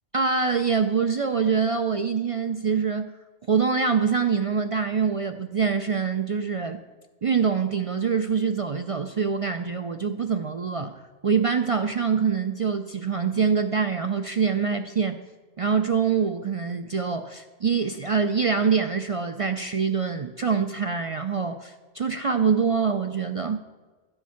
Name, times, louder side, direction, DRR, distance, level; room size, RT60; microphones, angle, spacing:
voice 1, 0.1-3.1 3.5-6.8 7.2-15.2 15.6-23.6, right 6 dB, 50° right, 8 dB, 0.4 m, -25 dB
13.5 x 7.8 x 5.7 m, 1.4 s
omnidirectional pair, 1.2 m